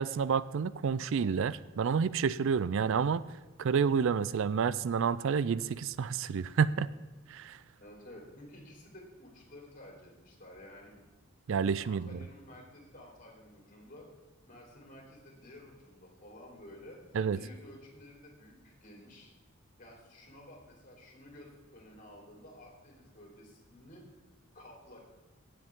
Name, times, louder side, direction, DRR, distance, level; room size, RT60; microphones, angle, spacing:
voice 1, 0.0-3.2 3.6-6.9 7.3-7.6 11.5-12.2 17.1-17.4, right 6 dB, 65° right, 17 dB, 0.4 m, -29 dB
voice 2, 7.8-11.0 11.8-14.1 14.5-17.0 17.3-19.3 19.8-24.1 24.5-25.0, left 1 dB, 40° left, -1 dB, 3.7 m, -52 dB
17.5 x 7.8 x 3.7 m, 1.2 s
head